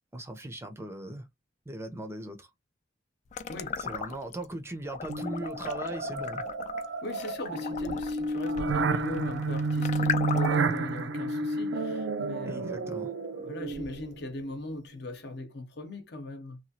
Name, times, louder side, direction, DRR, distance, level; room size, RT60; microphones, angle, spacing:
voice 1, 0.1-1.3 1.7-2.5 3.8-6.4 12.4-13.1, right 1 dB, 15° right, 0.5 m, -39 dB
sound 1, 3.3-4.4 4.8-10.8, left 7 dB, 40° left, 0.3 m, -36 dB
voice 2, 3.5-3.8 7.0-13.0 13.3-16.6, left 1 dB, 60° left, 0.7 m, -40 dB
sound 2, 5.1-14.2, right 3 dB, 75° right, 0.4 m, -31 dB
2.9 x 2.3 x 2.7 m
head